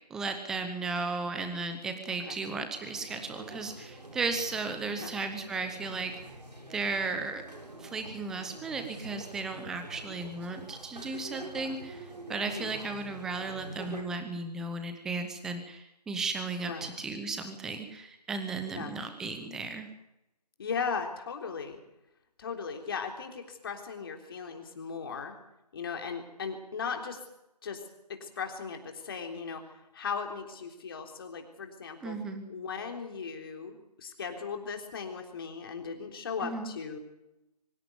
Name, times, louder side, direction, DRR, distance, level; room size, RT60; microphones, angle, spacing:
voice 1, 0.1-6.1 6.7-7.4 7.8-19.9 32.0-32.5 36.4-36.7, right 3 dB, 5° right, 7 dB, 0.8 m, -35 dB
sound 1, 2.7-14.0, right 2 dB, 85° right, 7.5 m, -46 dB
voice 2, 16.7-17.0 18.7-19.0 20.6-21.8 22.4-25.3 25.7-27.2 27.6-27.8 28.2-32.2 32.5-37.0, left 5 dB, 35° left, 4 dB, 3.6 m, -37 dB
24.0 x 15.0 x 9.5 m, 0.88 s
figure-of-eight pair, 160°, 21 cm